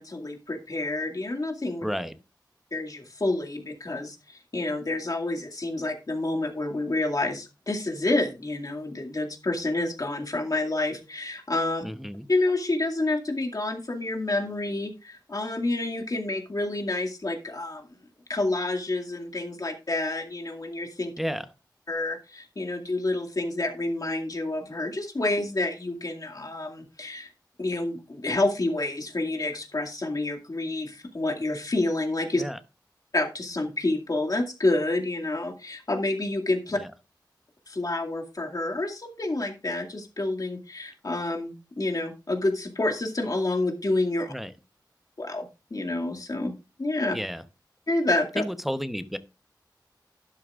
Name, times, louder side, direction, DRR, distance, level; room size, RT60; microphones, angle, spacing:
voice 1, 0.0-1.8 2.7-11.8 12.3-17.8 18.3-21.1 21.9-27.3 27.6-32.4 33.1-36.8 37.7-44.3 45.2-46.5 46.8-47.2 47.9-48.4, left 2 dB, 50° left, 2 dB, 2.2 m, -28 dB
voice 2, 1.8-2.1 11.8-12.3 21.2-21.5 32.4-32.6 36.8-36.9 44.3-44.5 47.1-47.4 48.4-49.2, equal, ahead, 10 dB, 0.9 m, -31 dB
12.0 x 10.5 x 2.4 m, 0.29 s
wide cardioid pair, 50°, 8 cm